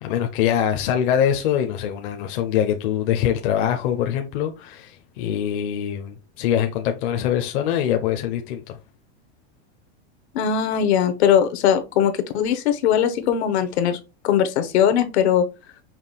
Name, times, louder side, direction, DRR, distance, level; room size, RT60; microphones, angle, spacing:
voice 1, 0.0-8.8, left 9 dB, 50° left, 0.7 m, -23 dB
voice 2, 10.3-14.0 14.2-15.4, left 9 dB, 70° left, 1.0 m, -20 dB
5.8 x 2.3 x 3.4 m
supercardioid pair, 170°, 34 cm